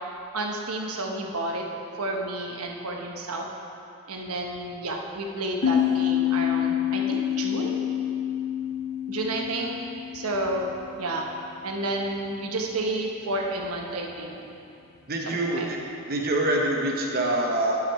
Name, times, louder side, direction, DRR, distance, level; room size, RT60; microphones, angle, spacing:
voice 1, 0.3-1.7 2.0-3.4 4.1-7.8 9.1-9.8 10.1-10.7 11.0-11.2 11.6-14.4 15.2-15.7, right 2 dB, 85° right, 0 dB, 1.1 m, -30 dB
sound 1, 5.6-11.0, left 10 dB, 70° left, 1.4 m, -27 dB
voice 2, 15.1-15.8 16.1-17.8, right 1 dB, 45° right, -1 dB, 0.9 m, -25 dB
11.5 x 6.1 x 4.7 m, 2.7 s
head